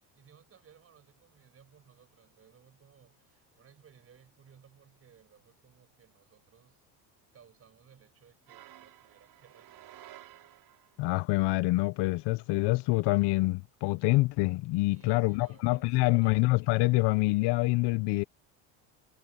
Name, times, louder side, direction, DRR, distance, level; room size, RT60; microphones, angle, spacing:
voice 1, 0.0-6.9 7.3-10.1 14.9-16.4, right 7 dB, 30° right, 5.0 m, -60 dB
sound 1, 8.5-11.1, right 13 dB, 55° right, 5.8 m, -53 dB
voice 2, 11.0-18.2, left 22 dB, 65° left, 0.7 m, -26 dB
cardioid pair, 135°, 45 cm